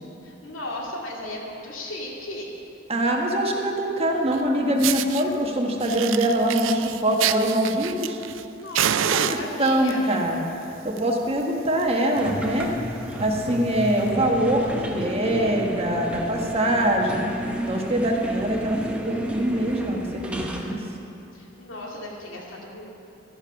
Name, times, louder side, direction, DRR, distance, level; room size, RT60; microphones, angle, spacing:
voice 1, 0.2-2.5 8.6-10.1 21.3-23.0, left 1 dB, 85° left, -2 dB, 2.4 m, -36 dB
voice 2, 2.9-8.2 9.0-10.4 10.8-12.7 13.2-17.2 17.7-18.8 19.0-20.8, right 1 dB, 30° right, 0 dB, 1.3 m, -23 dB
Fire, 4.3-4.4 4.8-5.2 5.8-8.4 8.7-9.9 10.7-11.0 11.3-11.4 11.8-11.9 12.1-12.4 12.9-13.0 13.9-14.0, right 10 dB, 80° right, 0.4 m, -27 dB
sound 1, 12.2-20.7, equal, 5° right, 0.9 m, -32 dB
13.0 x 10.5 x 5.7 m, 2.7 s
head